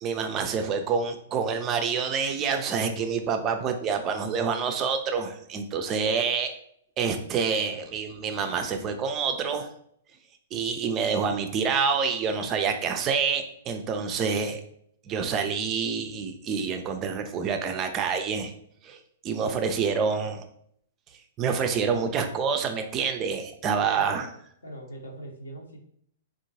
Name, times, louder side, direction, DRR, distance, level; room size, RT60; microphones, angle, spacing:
voice 1, 0.0-6.5 7.0-9.7 10.5-14.6 15.1-18.5 18.8-19.0 19.2-20.4 21.4-24.3, right 5 dB, 25° right, 6 dB, 0.4 m, -27 dB
voice 2, 23.7-24.3 24.6-25.8, right 1 dB, 70° left, 2 dB, 0.7 m, -42 dB
3.6 x 2.4 x 2.7 m, 0.67 s
figure-of-eight pair, 110°, 0 cm